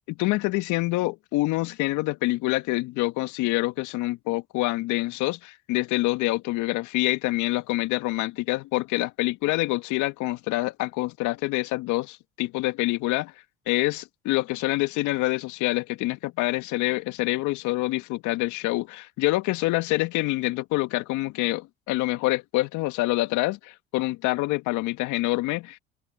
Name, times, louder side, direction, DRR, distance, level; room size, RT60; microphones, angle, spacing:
voice 1, 0.1-13.3 13.7-25.8, left 19 dB, 65° left, 2.0 m, -26 dB
hypercardioid pair, 65°, 32 cm